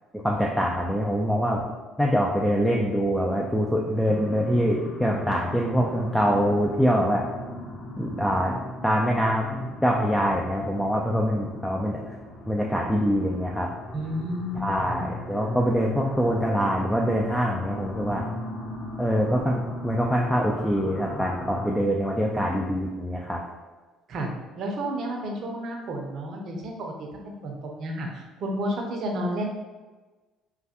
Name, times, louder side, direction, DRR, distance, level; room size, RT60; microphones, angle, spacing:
voice 1, 0.1-1.6 2.0-7.3 8.0-8.5 8.8-12.0 12.5-13.7 14.6-18.2 19.0-23.4, equal, 5° left, -1 dB, 0.4 m, -24 dB
sound 1, 4.0-21.7, left 1 dB, 60° left, 0.7 m, -37 dB
voice 2, 13.9-14.9 24.1-24.3 24.6-29.5, equal, 60° right, 1 dB, 0.6 m, -31 dB
3.2 x 2.2 x 2.8 m, 1.3 s
hypercardioid pair, 65°, 0 cm